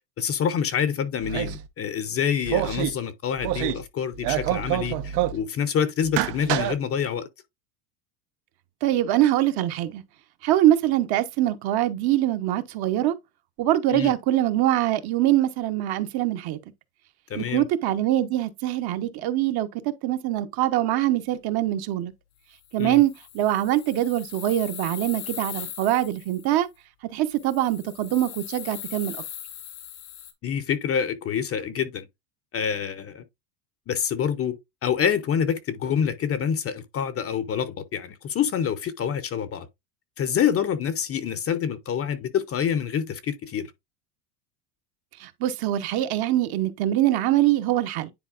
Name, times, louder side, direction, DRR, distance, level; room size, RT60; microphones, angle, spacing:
voice 1, 0.2-7.3 13.9-14.1 17.3-17.7 22.8-23.0 30.4-32.1 32.5-33.2 33.9-39.7 40.2-43.7, left 8 dB, 30° left, 0.7 m, -27 dB
sound 1, 1.2-1.7 2.4-2.9 3.4-3.9 4.1-5.4 6.0-6.8, right 13 dB, 75° right, 1.0 m, -27 dB
voice 2, 8.8-10.0 10.4-13.1 13.6-16.6 17.3-22.1 22.7-26.7 27.1-29.2 45.2-48.1, right 13 dB, 50° right, 0.9 m, -23 dB
sound 2, 22.6-26.6 27.3-30.3, left 11 dB, 80° left, 1.8 m, -40 dB
10.0 x 4.1 x 2.4 m
supercardioid pair, 125°, 49 cm